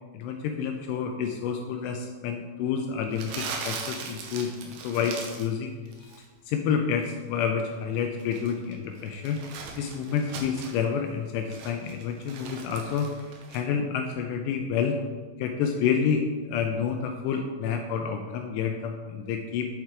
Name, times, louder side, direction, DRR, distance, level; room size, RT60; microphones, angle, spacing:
voice 1, 0.1-9.4 9.8-13.1 13.5-15.0 15.4-16.2 16.5-19.7, left 7 dB, 85° left, 4 dB, 2.5 m, -29 dB
Crumpling crinkling, 3.1-5.5 5.9-6.3 8.0-10.8 11.3-13.6, right 5 dB, 75° right, 2.7 m, -39 dB
8.3 x 4.4 x 4.6 m, 1.4 s
omnidirectional pair, 5.2 m